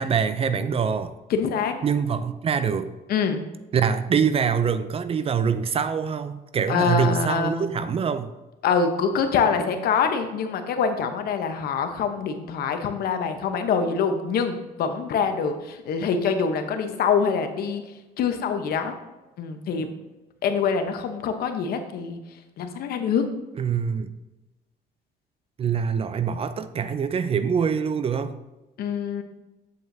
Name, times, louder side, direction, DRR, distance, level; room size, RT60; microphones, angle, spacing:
voice 1, 0.0-1.1 1.8-2.9 3.7-8.3 23.6-24.1 25.6-28.4, right 7 dB, 35° right, 12 dB, 0.5 m, -24 dB
voice 2, 1.3-1.7 3.1-3.4 6.7-7.7 8.6-17.8 18.2-18.9 19.4-19.9 20.4-22.2 22.6-23.2 28.8-29.2, left 6 dB, 65° left, 7 dB, 0.9 m, -25 dB
7.8 x 7.5 x 2.7 m, 1.1 s
cardioid pair, 110°, 17 cm